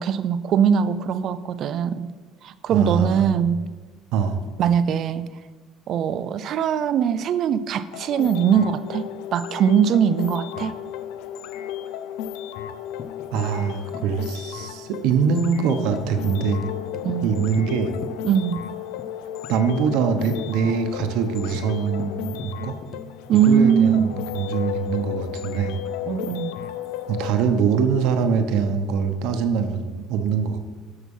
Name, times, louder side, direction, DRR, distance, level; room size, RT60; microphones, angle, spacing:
voice 1, 0.0-2.1 2.4-3.6 4.6-5.3 5.9-10.8 17.0-17.3 18.2-18.6 23.3-24.2 26.1-26.6, right 8 dB, 40° right, 14 dB, 0.5 m, -21 dB
voice 2, 2.7-3.5 4.1-4.4 13.3-16.6 17.2-17.9 19.5-22.8 23.3-25.8 27.1-30.6, right 6 dB, 65° right, 7 dB, 1.1 m, -23 dB
sound 1, 7.9-27.3, left 11 dB, 85° left, 0.6 m, -34 dB
Tambourine, 13.0-18.7 19.0-19.1 19.4-19.9 20.2-20.4 20.7-24.8 26.3-27.3, left 6 dB, 35° left, 0.6 m, -42 dB
13.5 x 5.9 x 5.5 m, 1.5 s
cardioid pair, 180°, 0 cm